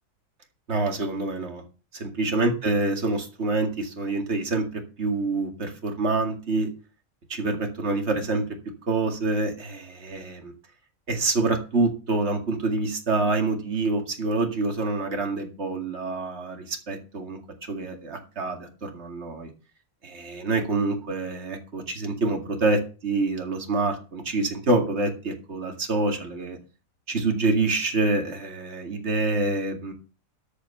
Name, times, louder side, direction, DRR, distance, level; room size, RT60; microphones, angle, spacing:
voice 1, 0.7-1.6 1.9-6.7 7.3-8.4 8.9-10.5 11.1-17.4 17.7-19.5 20.0-26.6 27.1-29.9, right 3 dB, 45° right, 3 dB, 2.4 m, -26 dB
13.0 x 5.7 x 6.8 m, 0.34 s
omnidirectional pair, 1.6 m